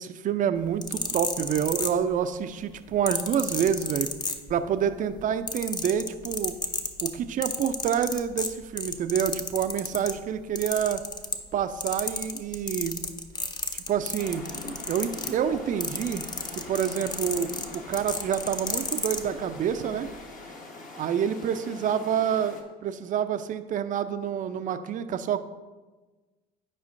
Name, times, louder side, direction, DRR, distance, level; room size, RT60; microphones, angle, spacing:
voice 1, 0.0-4.1 4.5-6.6 7.0-11.0 11.5-13.0 13.7-14.5 14.9-16.3 16.7-20.1 21.0-22.6 22.8-25.4, right 8 dB, 40° right, 10 dB, 0.5 m, -27 dB
sound 1, 0.6-2.4 3.1-4.8 5.1-10.2 10.6-11.6 11.8-19.2 20.0-20.1, left 3 dB, 20° left, 0.7 m, -32 dB
sound 2, 14.2-22.6, left 2 dB, 40° left, 1.2 m, -43 dB
9.6 x 5.0 x 2.6 m, 1.2 s
hypercardioid pair, 65°, 21 cm